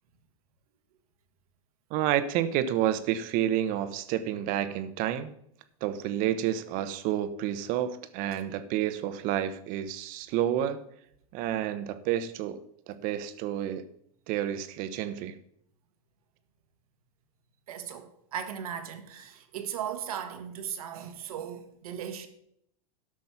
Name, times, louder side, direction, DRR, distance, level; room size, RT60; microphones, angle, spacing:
voice 1, 1.9-5.3 5.8-10.8 11.3-12.6 12.9-13.8 14.3-15.3, right 11 dB, 50° right, 1.0 m, -29 dB
voice 2, 17.7-22.3, right 9 dB, 85° right, 1.5 m, -37 dB
12.0 x 6.3 x 5.9 m
supercardioid pair, 125°, 18 cm